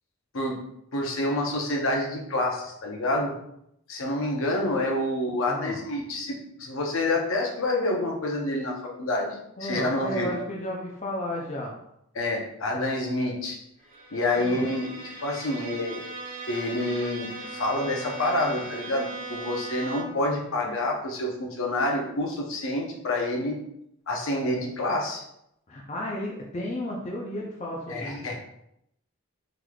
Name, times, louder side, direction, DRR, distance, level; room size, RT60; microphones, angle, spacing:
voice 1, 0.9-3.3 3.9-10.4 12.1-13.6 14.1-16.0 16.5-23.6 24.1-25.2 27.9-28.3, left 1 dB, 65° left, 0 dB, 0.7 m, -28 dB
voice 2, 5.5-5.8 9.6-11.7 14.4-14.7 25.7-28.3, left 1 dB, 30° left, -2 dB, 0.4 m, -33 dB
Bowed string instrument, 13.8-20.3, right 2 dB, 35° right, 0.6 m, -39 dB
3.8 x 3.1 x 2.3 m, 0.78 s
head